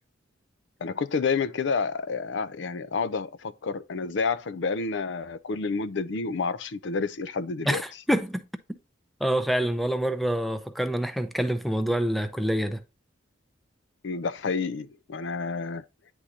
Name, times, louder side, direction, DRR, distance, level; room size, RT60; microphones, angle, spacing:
voice 1, 0.8-7.8 14.0-15.8, left 4 dB, 65° left, 0.5 m, -29 dB
voice 2, 7.7-8.4 8.7-8.8 9.2-12.8, equal, ahead, 0.5 m, -26 dB
9.7 x 3.8 x 2.8 m
head